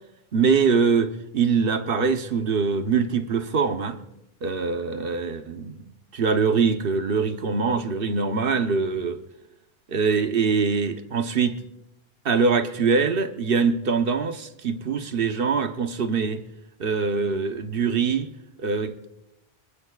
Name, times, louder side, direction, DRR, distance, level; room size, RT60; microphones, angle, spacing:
voice 1, 0.3-4.0 4.4-5.8 6.1-9.2 9.9-11.6 12.2-16.4 16.8-18.3 18.6-19.0, right 5 dB, 60° right, 1.1 m, -23 dB
23.0 x 22.5 x 2.4 m
omnidirectional pair, 1.1 m